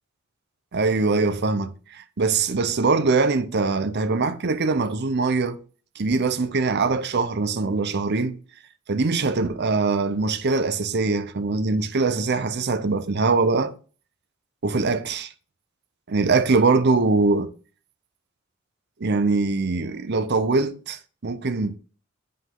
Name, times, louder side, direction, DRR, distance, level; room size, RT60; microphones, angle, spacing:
voice 1, 0.7-5.6 6.0-8.3 8.9-13.7 14.6-15.3 16.1-17.5 19.0-21.7, right 3 dB, 55° right, 0.7 m, -22 dB
7.6 x 5.3 x 3.8 m
head